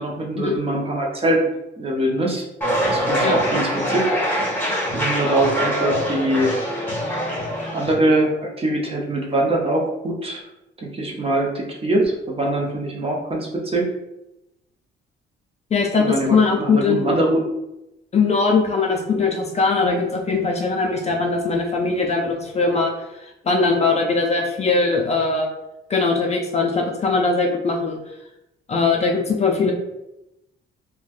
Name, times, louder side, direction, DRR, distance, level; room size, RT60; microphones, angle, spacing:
voice 1, 0.0-1.5 1.8-2.4 2.9-4.1 4.9-6.5 7.7-10.4 10.8-13.9 16.0-17.4, right 1 dB, 30° right, -1 dB, 0.7 m, -22 dB
sound 1, 2.6-7.9, equal, 10° left, 1.1 m, -23 dB
voice 2, 15.7-17.1 18.1-22.9 23.4-25.5 25.9-28.0 28.7-29.7, left 4 dB, 35° left, 1 dB, 0.4 m, -20 dB
3.0 x 2.2 x 2.4 m, 0.90 s
cardioid pair, 90°, 20 cm